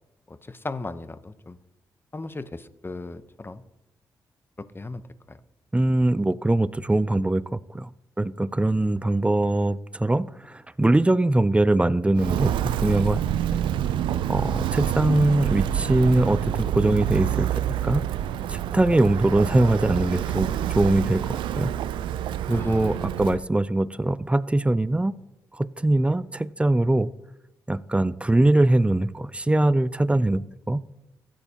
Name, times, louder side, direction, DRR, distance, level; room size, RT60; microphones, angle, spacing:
voice 1, 0.3-1.6 2.1-3.6 4.6-5.0 5.3-5.4 14.7-15.2 22.5-23.0, left 2 dB, 25° left, 0.7 m, -37 dB
voice 2, 5.7-7.9 8.2-12.5 12.8-13.2 13.5-13.6 14.3-18.1 18.5-21.8 22.5-25.1 25.6-27.1 27.7-30.8, right 2 dB, 15° right, 0.4 m, -22 dB
Walk footsteps, 12.1-23.4, right 11 dB, 85° right, 0.3 m, -27 dB
13.5 x 9.0 x 2.8 m
supercardioid pair, 50°, 8 cm